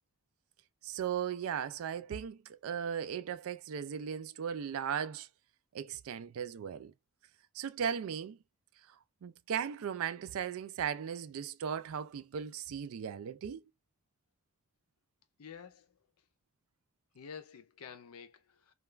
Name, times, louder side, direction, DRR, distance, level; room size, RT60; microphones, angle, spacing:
voice 1, 0.8-5.3 5.7-6.9 7.5-8.4 9.2-13.6, right 8 dB, 70° right, 0.3 m, -37 dB
voice 2, 15.4-16.3 17.1-18.7, left 6 dB, 75° left, 0.5 m, -50 dB
2.3 x 2.3 x 3.1 m
head